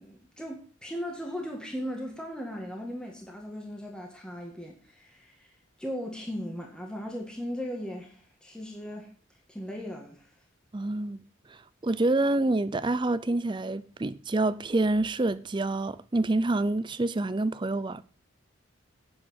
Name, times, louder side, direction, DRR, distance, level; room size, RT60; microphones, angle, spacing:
voice 1, 0.0-5.5 5.8-9.1 9.5-10.3, equal, 5° left, 1.8 m, -37 dB
voice 2, 10.7-11.2 11.5-18.0, right 2 dB, 25° right, 0.5 m, -27 dB
8.9 x 7.3 x 7.4 m
head